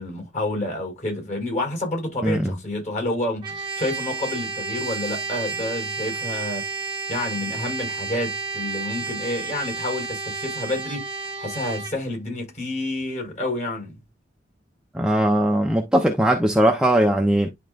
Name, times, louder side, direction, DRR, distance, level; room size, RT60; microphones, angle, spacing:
voice 1, 0.0-6.6 7.1-11.0 11.4-13.9, left 1 dB, 40° left, 4.6 m, -29 dB
voice 2, 2.2-2.5 14.9-17.5, right 1 dB, 5° right, 0.8 m, -19 dB
Trumpet, 3.4-12.0, right 4 dB, 25° right, 1.2 m, -31 dB
10.5 x 3.9 x 2.5 m
head